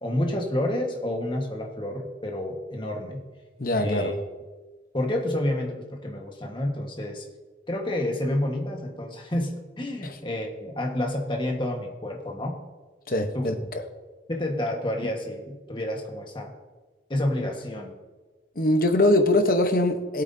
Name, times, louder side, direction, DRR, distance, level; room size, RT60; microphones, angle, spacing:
voice 1, 0.0-3.2 3.8-4.1 4.9-7.2 7.7-12.6 13.3-13.5 14.3-16.5 17.1-17.9, left 1 dB, 30° left, 2 dB, 1.4 m, -29 dB
voice 2, 3.6-4.1 10.0-10.1 13.1-13.8 18.6-20.2, left 1 dB, 55° left, 6 dB, 1.0 m, -22 dB
18.5 x 8.2 x 2.7 m, 1.3 s
head